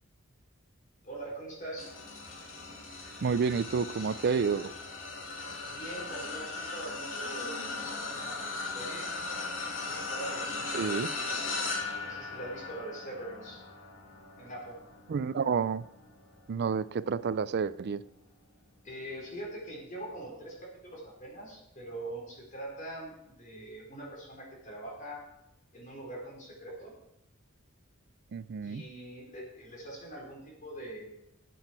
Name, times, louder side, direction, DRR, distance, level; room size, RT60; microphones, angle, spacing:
voice 1, 1.0-1.9 5.7-7.6 8.0-9.1 9.9-11.2 12.0-13.6 14.4-14.8 18.8-20.6 20.8-25.2 25.7-26.9 28.6-31.1, right 1 dB, 40° left, -2 dB, 3.8 m, -43 dB
sound 1, 1.8-17.3 17.8-18.1 19.3-19.4, left 3 dB, 70° left, 2.4 m, -38 dB
voice 2, 3.2-4.7 10.7-11.1 15.1-15.9 16.5-18.0 28.3-28.8, right 5 dB, 55° right, 17 dB, 0.4 m, -29 dB
13.0 x 8.0 x 4.4 m, 0.87 s
head